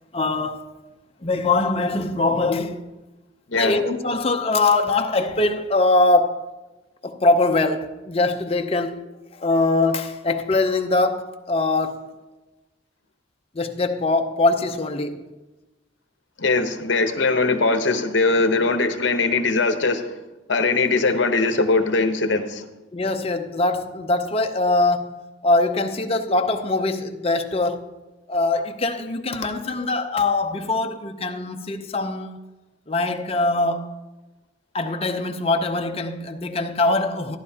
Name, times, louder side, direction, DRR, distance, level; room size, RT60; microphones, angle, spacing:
voice 1, 0.1-0.7 1.2-2.8 3.5-6.4 7.0-12.0 13.5-15.3 22.9-27.9 28.3-32.3 32.9-33.9 34.7-37.4, left 2 dB, 30° left, 0.6 m, -22 dB
voice 2, 3.5-3.8 16.4-20.1 20.5-22.6, left 3 dB, 65° left, 0.9 m, -21 dB
14.0 x 10.5 x 2.8 m
head